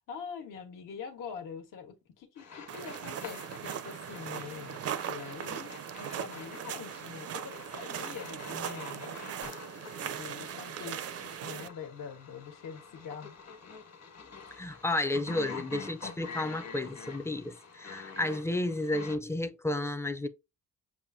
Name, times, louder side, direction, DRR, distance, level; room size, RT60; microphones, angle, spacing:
voice 1, 0.1-9.4 10.0-13.4, left 6 dB, 75° left, 1.4 m, -44 dB
sound 1, 2.4-19.2, left 5 dB, 50° left, 1.4 m, -47 dB
sound 2, 2.7-11.7, right 9 dB, 50° right, 0.5 m, -39 dB
voice 2, 14.5-20.3, left 2 dB, 10° left, 0.5 m, -32 dB
7.0 x 2.6 x 2.6 m
cardioid pair, 125°, 33 cm